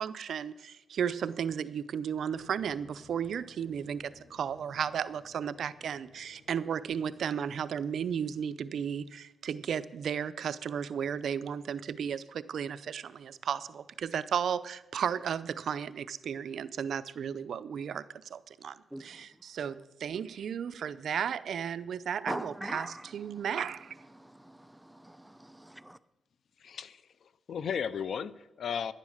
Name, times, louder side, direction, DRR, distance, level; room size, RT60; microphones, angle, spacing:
voice 1, 0.0-18.0 18.3-24.0, right 8 dB, 75° right, 0.5 m, -34 dB
sound 1, 2.3-8.3, left 3 dB, 50° left, 1.5 m, -59 dB
voice 2, 22.3-23.0 24.1-26.0, right 1 dB, 5° right, 0.5 m, -41 dB
voice 3, 26.6-28.9, left 7 dB, 70° left, 0.5 m, -35 dB
10.5 x 10.5 x 6.4 m
cardioid pair, 95°, 0 cm